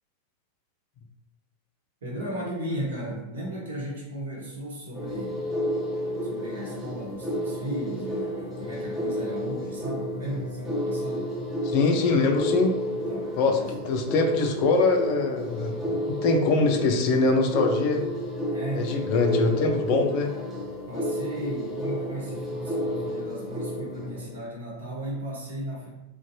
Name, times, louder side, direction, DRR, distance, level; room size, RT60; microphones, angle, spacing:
voice 1, 2.0-5.4 6.2-11.3 12.9-13.6 18.5-19.1 20.9-25.9, right 1 dB, 65° right, -4 dB, 0.9 m, -35 dB
sound 1, 4.9-24.4, equal, ahead, 0.7 m, -31 dB
voice 2, 11.7-12.8 13.4-13.6 13.8-18.0 18.7-20.3, left 3 dB, 45° left, 3 dB, 0.4 m, -23 dB
2.5 x 2.2 x 2.7 m, 0.97 s
figure-of-eight pair, 90°, 0 cm